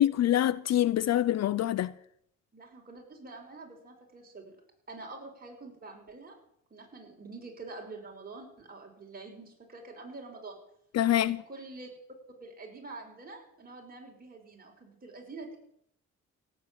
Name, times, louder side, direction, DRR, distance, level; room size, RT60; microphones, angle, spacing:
voice 1, 0.0-1.9 10.9-11.4, left 12 dB, 60° left, 0.6 m, -25 dB
voice 2, 2.5-4.6 4.9-6.4 6.7-10.6 11.1-11.9 12.4-15.6, right 3 dB, 30° right, 5.7 m, -46 dB
17.0 x 8.2 x 8.8 m
cardioid pair, 90°, 30 cm